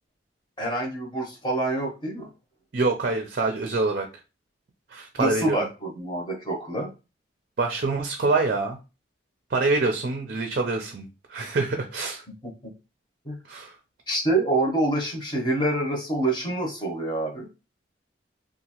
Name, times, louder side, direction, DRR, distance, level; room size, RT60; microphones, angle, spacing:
voice 1, 0.6-2.3 5.2-6.9 12.6-12.7 13.2-13.4 14.1-17.5, right 2 dB, 25° left, -1 dB, 0.8 m, -26 dB
voice 2, 2.7-4.1 4.9-5.7 7.6-8.8 9.5-12.2 13.5-13.7, right 3 dB, 50° right, 3 dB, 0.4 m, -26 dB
2.8 x 2.4 x 2.8 m, 0.29 s
head